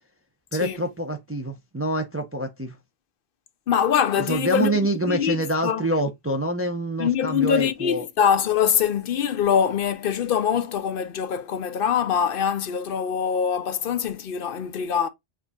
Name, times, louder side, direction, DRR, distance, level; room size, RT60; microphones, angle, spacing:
voice 1, 0.5-2.8 4.2-8.1, right 1 dB, 25° right, 0.3 m, -26 dB
voice 2, 3.7-4.7 5.0-5.8 7.0-15.1, left 8 dB, 60° left, 0.7 m, -23 dB
7.1 x 2.6 x 2.3 m
omnidirectional pair, 1.1 m